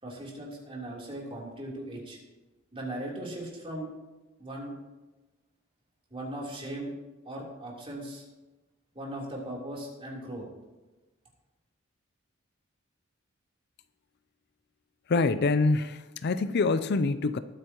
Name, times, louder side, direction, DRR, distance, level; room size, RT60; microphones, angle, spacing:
voice 1, 0.0-2.2 2.7-3.9 4.4-4.7 6.1-6.9 7.2-8.2 8.9-10.5, right 1 dB, 30° right, -3 dB, 3.4 m, -38 dB
voice 2, 15.1-17.4, left 3 dB, 55° left, 13 dB, 0.5 m, -25 dB
20.0 x 9.1 x 3.0 m, 1.1 s
head